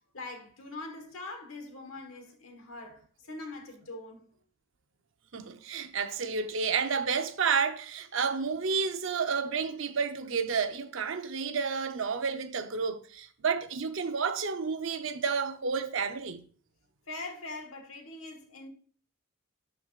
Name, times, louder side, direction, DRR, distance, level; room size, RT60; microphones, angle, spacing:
voice 1, 0.1-3.0 3.3-4.2 17.1-18.7, left 2 dB, 75° left, 1.4 m, -42 dB
voice 2, 5.3-16.4, right 5 dB, 65° right, 0.7 m, -30 dB
12.0 x 4.5 x 2.4 m
head